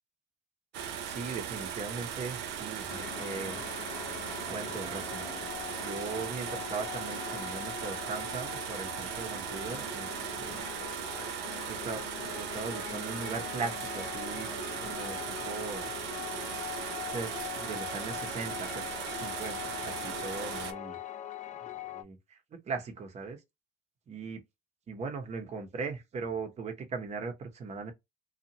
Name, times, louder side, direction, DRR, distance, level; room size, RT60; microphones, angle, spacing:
sound 1, 0.7-20.7, right 8 dB, 85° right, 0.6 m, -38 dB
voice 1, 1.0-3.6 4.5-5.3 5.8-10.9 11.7-12.0 12.3-14.5 14.8-15.9 17.1-18.8 19.1-21.0 21.7-23.4 24.1-24.4 24.9-27.9, right 4 dB, 40° right, 0.9 m, -39 dB
sound 2, 2.9-22.0, left 11 dB, 45° left, 0.4 m, -42 dB
2.6 x 2.5 x 2.8 m
cardioid pair, 110°, 17 cm